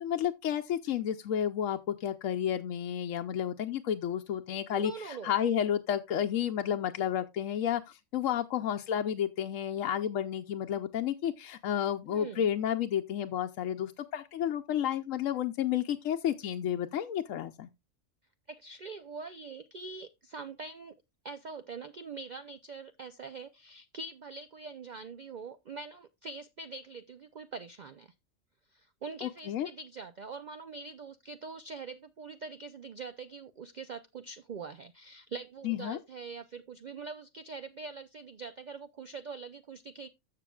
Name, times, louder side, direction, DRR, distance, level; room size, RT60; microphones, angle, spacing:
voice 1, 0.0-17.7 29.2-29.7 35.6-36.0, left 9 dB, 85° left, 1.1 m, -31 dB
voice 2, 4.7-5.3 12.1-12.5 18.5-21.0 21.2-28.1 28.7-40.1, right 4 dB, 55° right, 0.5 m, -43 dB
14.5 x 5.6 x 2.3 m
omnidirectional pair, 1.3 m